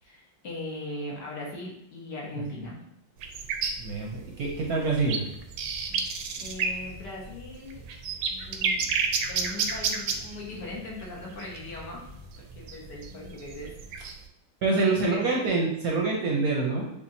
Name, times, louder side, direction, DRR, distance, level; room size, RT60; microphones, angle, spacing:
voice 1, 0.0-2.8 5.8-6.1 6.4-7.8 8.5-8.8 9.3-13.7 14.8-15.4, left 1 dB, 65° left, -3 dB, 1.6 m, -39 dB
sound 1, 3.2-14.2, right 5 dB, 85° right, 1.4 m, -30 dB
voice 2, 3.8-5.3 14.6-16.9, right 3 dB, 65° right, -2 dB, 1.0 m, -26 dB
sound 2, 4.4-14.0, left 3 dB, 45° left, 1.8 m, -49 dB
6.8 x 2.5 x 2.7 m, 0.80 s
omnidirectional pair, 2.1 m